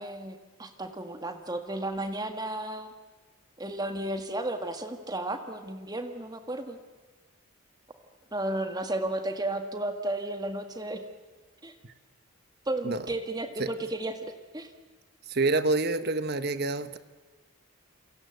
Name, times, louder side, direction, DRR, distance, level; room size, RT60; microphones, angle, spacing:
voice 1, 0.0-2.9 3.6-6.8 8.3-11.0 11.6-11.7 12.7-14.7, right 1 dB, 20° right, 6 dB, 1.8 m, -33 dB
voice 2, 15.3-17.0, right 3 dB, 45° right, 11 dB, 1.1 m, -27 dB
29.0 x 24.0 x 8.0 m, 1.3 s
head